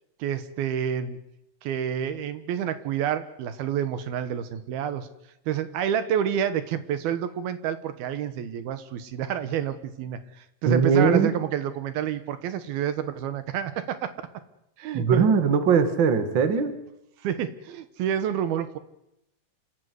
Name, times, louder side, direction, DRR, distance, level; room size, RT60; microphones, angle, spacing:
voice 1, 0.2-1.2 1.6-5.1 5.5-14.1 14.8-15.3 16.4-16.5 17.2-18.8, right 9 dB, 75° right, 12 dB, 3.0 m, -29 dB
voice 2, 10.7-11.3 14.9-16.8, right 6 dB, 40° right, 10 dB, 1.9 m, -20 dB
27.0 x 14.5 x 9.5 m, 0.83 s
omnidirectional pair, 4.6 m